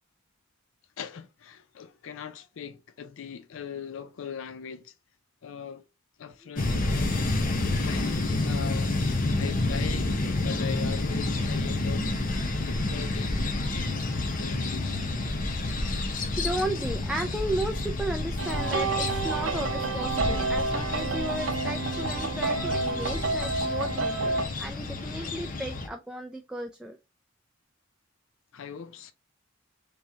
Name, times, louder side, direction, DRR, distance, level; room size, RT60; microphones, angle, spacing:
voice 1, 1.0-4.9 5.4-5.8 6.2-7.1 7.8-9.0 9.4-12.1 12.5-13.5 14.4-15.0 16.1-16.3 28.5-29.1, left 7 dB, 80° left, 0.4 m, -40 dB
sound 1, 6.5-25.9, left 2 dB, 45° left, 0.7 m, -29 dB
voice 2, 16.4-27.0, right 1 dB, 5° right, 0.3 m, -34 dB
sound 2, 18.4-24.5, right 3 dB, 80° right, 0.6 m, -29 dB
3.6 x 3.0 x 2.6 m
head